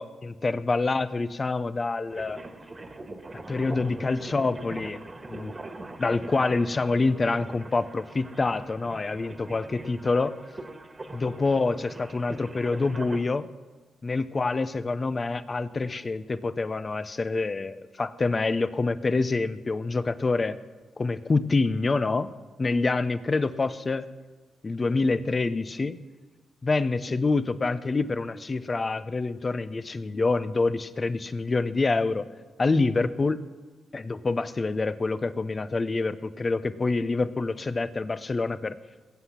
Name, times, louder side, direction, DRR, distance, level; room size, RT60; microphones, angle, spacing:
voice 1, 0.0-2.4 3.3-5.0 5.3-5.5 6.0-10.4 11.1-13.5 14.0-20.6 21.0-22.3 22.6-24.0 24.6-26.0 26.6-32.2 32.6-33.4 33.9-38.8, left 3 dB, 35° left, 13 dB, 0.8 m, -26 dB
sound 1, 2.1-13.2, right 2 dB, 30° right, 1.7 m, -42 dB
20.5 x 8.1 x 5.9 m, 1.3 s
supercardioid pair, 55°, 0 cm